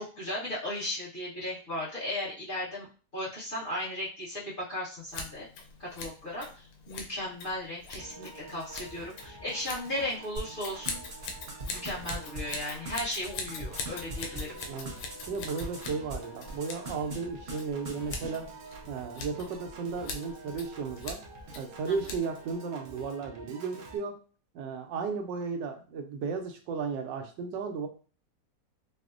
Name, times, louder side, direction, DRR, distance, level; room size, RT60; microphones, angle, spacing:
voice 1, 0.0-2.9 3.1-5.5 5.8-11.0 11.6-14.6 21.9-22.1, left 1 dB, 35° left, -9 dB, 1.1 m, -36 dB
Scissors, 5.1-22.5, left 4 dB, 90° left, 1.3 m, -43 dB
Piano / Organ, 8.0-24.0, right 2 dB, 75° right, 0.6 m, -48 dB
sound 1, 10.4-16.2 16.5-17.2 17.5-17.6 17.8-18.3, right 2 dB, 45° right, 0.9 m, -39 dB
voice 2, 15.3-18.5 18.9-21.2 21.5-24.2 24.5-27.9, right 5 dB, 90° right, 4 dB, 1.3 m, -34 dB
4.7 x 2.1 x 2.5 m, 0.38 s
omnidirectional pair, 1.9 m